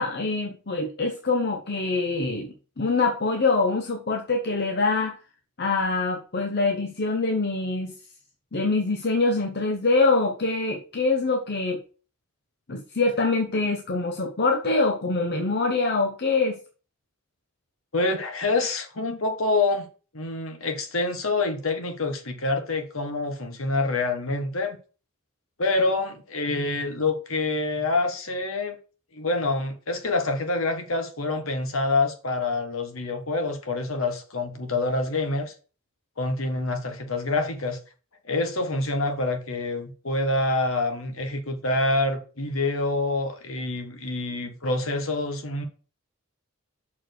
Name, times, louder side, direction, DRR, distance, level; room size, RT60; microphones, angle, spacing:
voice 1, 0.0-5.1 5.6-7.9 8.5-11.8 12.7-16.6, left 3 dB, 50° left, 1.0 m, -24 dB
voice 2, 17.9-19.9 20.1-24.8 25.6-28.8 29.1-35.5 36.2-37.8 38.2-45.7, left 2 dB, 70° left, 1.4 m, -26 dB
6.2 x 4.5 x 6.4 m
head